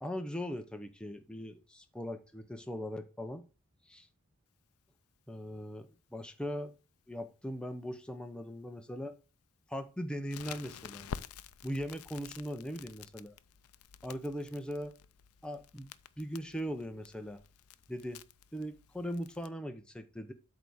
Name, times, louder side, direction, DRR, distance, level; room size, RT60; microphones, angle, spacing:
voice 1, 0.0-3.4 3.9-4.1 5.3-6.7 7.1-9.1 9.7-11.1 11.6-13.3 14.0-14.9 15.4-17.4 17.9-18.2 18.5-20.3, equal, 5° left, 0.8 m, -40 dB
Crackle, 10.3-19.5, left 7 dB, 90° left, 0.5 m, -49 dB
8.3 x 3.5 x 6.3 m
head